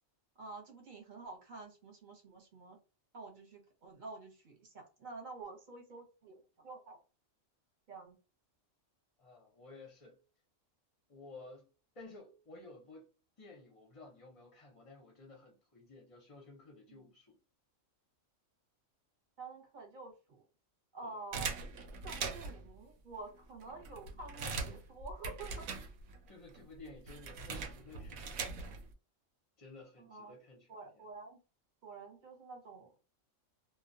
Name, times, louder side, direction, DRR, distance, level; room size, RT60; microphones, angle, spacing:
voice 1, 0.4-2.8 3.1-7.0 7.9-8.2 16.9-17.1 19.4-20.4 20.9-21.5 22.0-25.7 30.1-30.4 30.7-31.4 31.8-32.9, right 3 dB, 40° right, 0.8 m, -49 dB
voice 2, 9.2-10.2 11.1-11.7 12.0-13.1 13.4-17.4 21.0-21.2 26.3-28.7 29.6-31.1, left 2 dB, 35° left, 0.5 m, -54 dB
sound 1, 21.3-22.7 23.3-23.4 23.6-26.3 26.5-28.9, right 4 dB, 80° right, 1.0 m, -41 dB
2.2 x 2.2 x 2.5 m
omnidirectional pair, 1.4 m